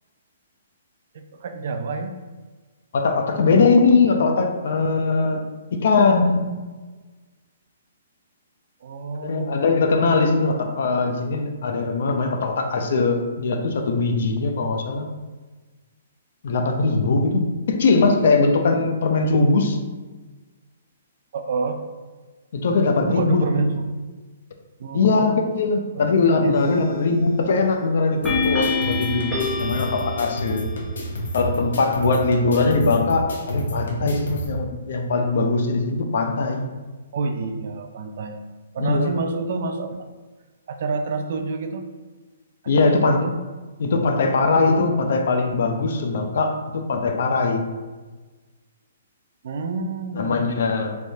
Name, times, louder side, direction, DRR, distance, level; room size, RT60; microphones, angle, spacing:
voice 1, 1.1-2.1 8.8-9.7 21.3-21.9 23.1-23.8 24.8-25.5 25.9-26.6 37.1-38.4 38.7-40.0 40.7-41.9 42.8-43.4 49.4-50.4, right 3 dB, 50° right, 6 dB, 0.3 m, -28 dB
voice 2, 2.9-5.4 5.7-6.5 9.2-15.1 16.4-19.8 22.5-23.8 24.9-30.7 31.3-36.7 38.8-39.1 42.7-43.2 43.8-47.6 50.2-51.0, left 3 dB, 55° left, 4 dB, 0.4 m, -21 dB
sound 1, 26.5-27.0 28.2-31.0, left 4 dB, ahead, 0.7 m, -27 dB
sound 2, 28.2-34.5, right 1 dB, 90° left, 0.9 m, -30 dB
3.3 x 3.1 x 2.7 m, 1.3 s
hypercardioid pair, 170°, 0 cm